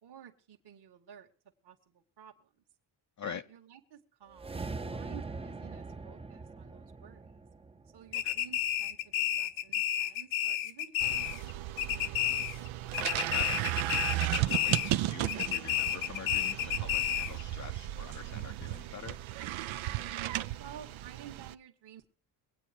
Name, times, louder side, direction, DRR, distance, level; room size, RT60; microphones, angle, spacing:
voice 1, 0.0-1.3 1.6-2.6 3.2-7.4 7.9-12.0 17.6-17.9 20.5-22.1, right 9 dB, 55° right, 1.9 m, -53 dB
sound 1, 4.3-8.7, right 3 dB, 15° right, 0.7 m, -42 dB
sound 2, 8.1-11.5 11.8-12.7 12.9-15.0 15.3-17.4, left 11 dB, 90° left, 0.8 m, -31 dB
sound 3, 11.0-21.5, right 15 dB, 80° right, 0.8 m, -35 dB
voice 2, 13.0-13.9 14.3-19.2, left 7 dB, 40° left, 0.7 m, -45 dB
22.5 x 8.8 x 4.4 m
cardioid pair, 110°, 46 cm